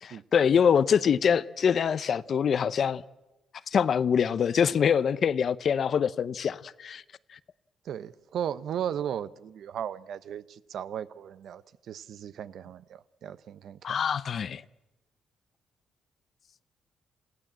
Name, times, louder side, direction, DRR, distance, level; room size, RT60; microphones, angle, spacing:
voice 1, 0.0-3.0 3.7-7.0 13.8-14.6, left 7 dB, 55° left, 0.7 m, -24 dB
voice 2, 7.8-14.0, right 9 dB, 70° right, 0.7 m, -36 dB
28.0 x 16.0 x 7.5 m
cardioid pair, 90°, 0 cm